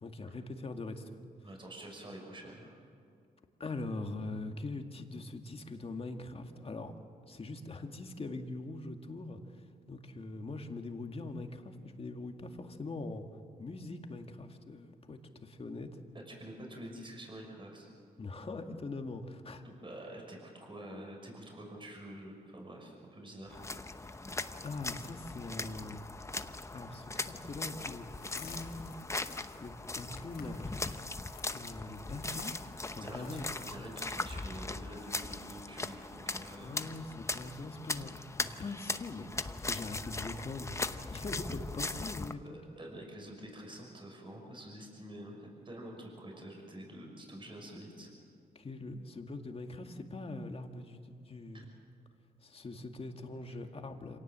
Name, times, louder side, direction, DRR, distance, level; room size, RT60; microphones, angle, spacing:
voice 1, 0.0-1.2 3.6-6.9 7.3-13.3 13.6-15.9 18.2-19.6 24.6-26.0 26.7-28.9 29.6-31.0 31.5-32.6 32.9-33.5 33.8-34.0 36.6-42.6 48.6-51.7 52.4-54.2, left 2 dB, 35° left, 5 dB, 2.1 m, -42 dB
voice 2, 1.4-2.8 16.3-17.9 19.6-23.6 23.9-24.3 32.1-32.2 33.0-36.7 42.4-48.1 51.5-51.7, right 1 dB, 30° right, 0 dB, 6.0 m, -47 dB
sound 1, 23.5-42.3, left 2 dB, 15° left, 0.9 m, -39 dB
sound 2, 28.0-33.8, left 7 dB, 90° left, 3.6 m, -54 dB
26.0 x 18.0 x 7.6 m, 2.4 s
cardioid pair, 80°, 16 cm